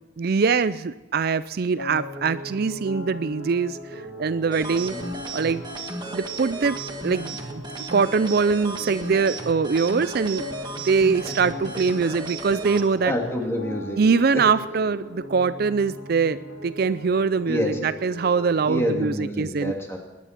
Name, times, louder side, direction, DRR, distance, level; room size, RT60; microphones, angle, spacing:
voice 1, 0.2-4.9 5.3-5.6 6.1-6.8 7.0-7.6 7.9-10.4 10.8-13.1 14.0-19.7, right 5 dB, 55° right, 14 dB, 0.4 m, -23 dB
sound 1, 1.8-18.9, equal, 75° left, 4.0 m, -39 dB
sound 2, 4.5-12.8, right 2 dB, 25° right, 1.6 m, -35 dB
voice 2, 13.1-14.0 14.3-14.4 17.5-17.8 18.6-20.0, left 1 dB, 15° left, 1 dB, 2.5 m, -27 dB
20.5 x 11.0 x 5.9 m, 1.1 s
head